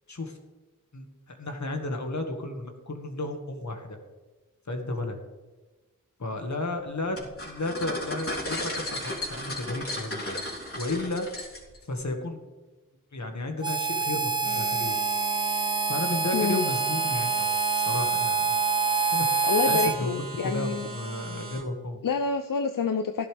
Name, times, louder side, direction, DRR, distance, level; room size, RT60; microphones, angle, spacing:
voice 1, 0.9-4.0 4.7-5.2 6.2-7.2 7.5-11.3 11.9-12.4 13.1-15.0 15.9-18.5 19.1-19.3 19.7-22.0, left 2 dB, 60° left, 4 dB, 1.9 m, -33 dB
sound 1, 7.2-11.8, left 1 dB, 45° left, 3.5 m, -34 dB
Harmonica, 13.6-20.0, right 4 dB, 15° right, 1.0 m, -26 dB
sound 2, 14.4-21.6, right 4 dB, 80° right, 2.0 m, -40 dB
voice 2, 16.3-16.7 19.4-20.9 22.0-23.3, left 5 dB, 80° left, 8 dB, 0.6 m, -27 dB
15.0 x 11.0 x 3.5 m, 1.2 s
wide cardioid pair, 60°, 32 cm